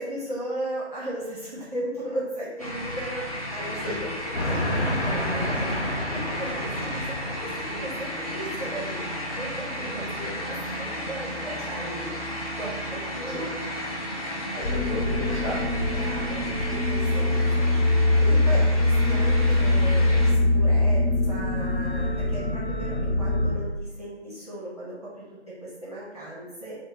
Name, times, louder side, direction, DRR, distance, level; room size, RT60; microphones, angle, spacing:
voice 1, 0.0-3.9 4.6-5.8 6.1-9.1 9.4-12.2 12.6-13.5 14.5-14.6 16.0-17.7 18.2-26.8, right 1 dB, 35° right, -7 dB, 0.8 m, -36 dB
sound 1, 2.6-20.3, equal, 35° left, 0.4 m, -34 dB
voice 2, 3.8-5.0 9.8-10.5 13.2-13.4 14.5-15.7 17.2-17.6 18.5-18.7, left 1 dB, 15° left, -10 dB, 0.9 m, -36 dB
Train, 4.3-8.3, left 1 dB, 75° left, 0.9 m, -29 dB
sound 2, 14.6-23.5, left 2 dB, 55° left, 1.1 m, -23 dB
2.9 x 2.1 x 3.1 m, 1.0 s
figure-of-eight pair, 155°, 35 cm